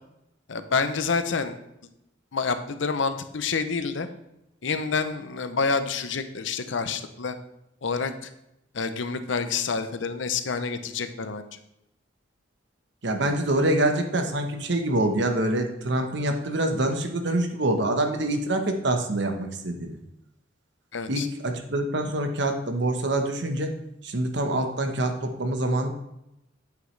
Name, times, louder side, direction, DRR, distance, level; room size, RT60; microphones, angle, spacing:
voice 1, 0.5-1.6 2.3-4.1 4.6-7.4 7.8-8.3 8.7-11.6 20.9-21.3, left 5 dB, 75° left, 10 dB, 0.7 m, -28 dB
voice 2, 13.0-20.0 21.1-23.8 24.0-25.9, right 1 dB, 65° right, 5 dB, 1.0 m, -25 dB
8.5 x 8.1 x 3.3 m, 0.85 s
head